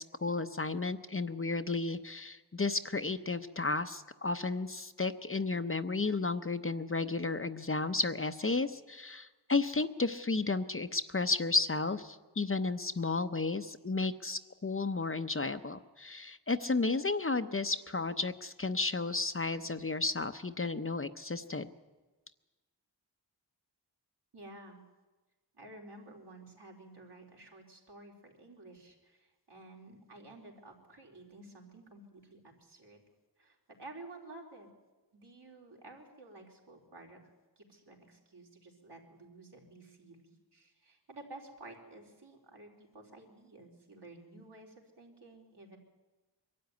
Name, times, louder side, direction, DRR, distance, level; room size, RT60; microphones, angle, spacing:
voice 1, 0.0-21.7, left 3 dB, 30° left, 10 dB, 0.8 m, -33 dB
voice 2, 24.3-24.8 25.5-33.0 33.4-34.7 35.1-37.2 37.6-45.8, right 2 dB, 70° right, -1 dB, 4.0 m, -52 dB
23.0 x 13.0 x 9.4 m, 1.2 s
wide cardioid pair, 70°, 42 cm